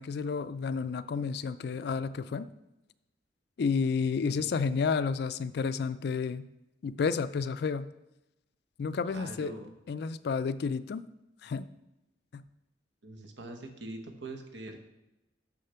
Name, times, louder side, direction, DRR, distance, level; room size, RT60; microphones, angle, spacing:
voice 1, 0.0-2.5 3.6-6.5 6.8-7.9 8.8-9.5 9.9-11.1 11.4-11.7 12.3-12.4, left 5 dB, 60° left, 14 dB, 0.3 m, -31 dB
voice 2, 9.1-9.7 13.0-14.8, right 2 dB, 70° right, 4 dB, 1.2 m, -43 dB
6.6 x 6.5 x 5.6 m, 0.93 s
head